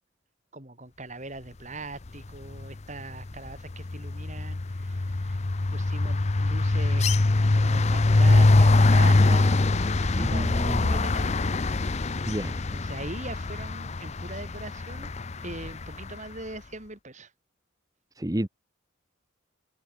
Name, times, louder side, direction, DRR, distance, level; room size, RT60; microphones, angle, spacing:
voice 1, 0.5-5.4 5.7-11.4 12.7-17.3, right 2 dB, 35° right, 3.3 m, -41 dB
sound 1, 2.3-2.7 3.0-16.1, left 2 dB, 30° left, 0.6 m, -23 dB
voice 2, 10.1-11.1 12.3-12.6 18.2-18.5, right 1 dB, 15° right, 0.9 m, -31 dB
head